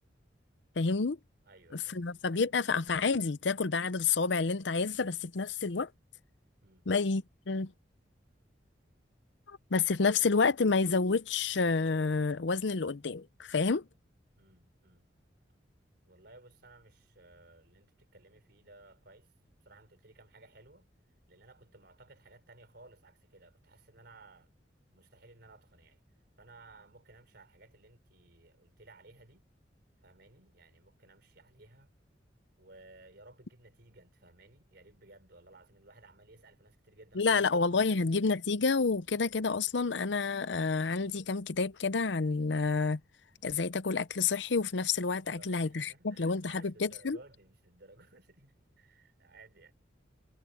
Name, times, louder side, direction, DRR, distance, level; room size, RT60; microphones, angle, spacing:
voice 1, 0.8-1.2 1.7-5.9 6.9-7.7 9.5-13.8 37.1-43.0 43.4-47.2, left 4 dB, 70° left, 0.7 m, -29 dB
voice 2, 1.4-2.1 6.6-6.9 14.4-15.0 16.1-19.3 19.6-20.9 21.3-24.5 24.9-26.0 26.4-29.5 30.0-31.9 32.6-37.5 37.7-38.1 45.2-49.7, right 2 dB, 60° right, 4.8 m, -58 dB
head